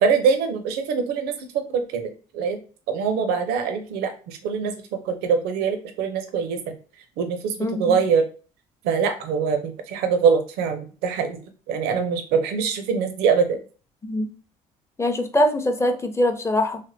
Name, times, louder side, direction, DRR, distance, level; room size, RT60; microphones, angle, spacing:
voice 1, 0.0-2.6 2.9-6.7 7.2-8.2 8.8-11.4 11.7-13.6, right 6 dB, 70° right, 7 dB, 0.6 m, -23 dB
voice 2, 7.6-8.0 14.0-14.3 15.0-16.8, left 1 dB, 15° left, 6 dB, 0.6 m, -22 dB
3.3 x 2.1 x 2.6 m, 0.38 s
hypercardioid pair, 65°, 17 cm